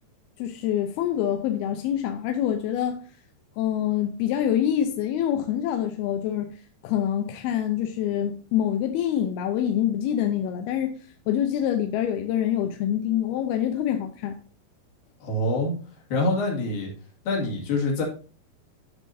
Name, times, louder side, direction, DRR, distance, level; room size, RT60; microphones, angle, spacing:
voice 1, 0.4-3.0 3.6-6.5 6.8-11.0 11.3-14.4, left 10 dB, 75° left, 2.4 m, -25 dB
voice 2, 15.2-15.7 16.1-16.9 17.3-18.0, left 2 dB, 60° left, 3.9 m, -25 dB
14.0 x 6.1 x 2.7 m
omnidirectional pair, 5.0 m